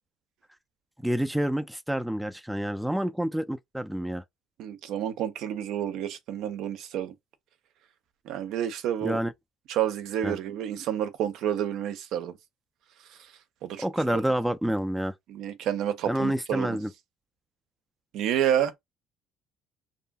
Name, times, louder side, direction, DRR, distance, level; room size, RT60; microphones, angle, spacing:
voice 1, 1.0-4.2 9.0-9.3 10.2-10.4 13.8-15.1 16.1-16.9, right 1 dB, 5° right, 0.3 m, -28 dB
voice 2, 4.6-7.1 8.2-9.2 9.7-12.4 13.1-13.2 13.6-14.2 15.3-16.8 18.1-18.8, right 10 dB, 75° right, 0.5 m, -29 dB
2.6 x 2.6 x 2.2 m
cardioid pair, 100°, 0 cm